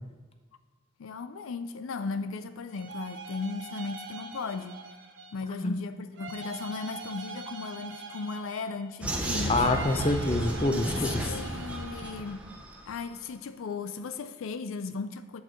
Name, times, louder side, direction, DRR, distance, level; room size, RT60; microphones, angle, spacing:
voice 1, 1.0-4.8 5.3-9.9 11.2-12.5 12.9-15.4, left 4 dB, 75° left, 10 dB, 0.4 m, -36 dB
sound 1, 2.7-5.5 6.1-9.0 9.4-12.4, right 3 dB, 60° right, 0.8 m, -43 dB
Vehicle, 9.0-12.9, equal, 5° right, 0.7 m, -34 dB
voice 2, 9.5-11.4, left 2 dB, 25° left, 6 dB, 0.6 m, -27 dB
8.5 x 4.6 x 6.3 m, 1.3 s
head